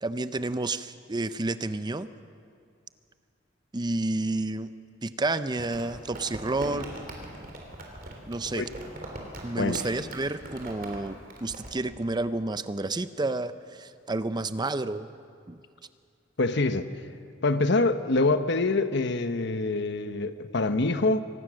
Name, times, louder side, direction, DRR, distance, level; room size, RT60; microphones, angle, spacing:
voice 1, 0.0-2.1 3.7-4.7 5.0-7.0 8.3-8.7 9.4-15.1 15.5-15.6, right 2 dB, 20° right, 13 dB, 0.6 m, -30 dB
Crumpling crinkling, 5.6-11.7, right 1 dB, 50° right, 3.7 m, -41 dB
voice 2, 16.4-16.9 17.4-21.2, left 2 dB, 60° left, 10 dB, 1.0 m, -25 dB
25.0 x 19.0 x 6.4 m, 2.3 s
head